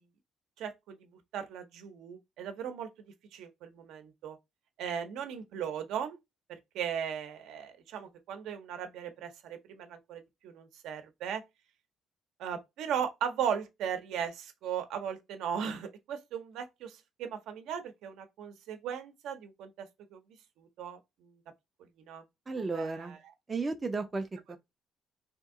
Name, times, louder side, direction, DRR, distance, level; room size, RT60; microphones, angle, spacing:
voice 1, 0.6-2.9 3.3-4.4 4.8-6.2 6.5-11.4 12.4-20.2 20.6-21.3 22.0-22.2 22.5-23.2, right 8 dB, 80° right, 0.6 m, -37 dB
voice 2, 22.5-23.2 23.5-24.6, right 3 dB, 20° right, 0.4 m, -34 dB
2.8 x 2.6 x 3.6 m
cardioid pair, 160°, 0 cm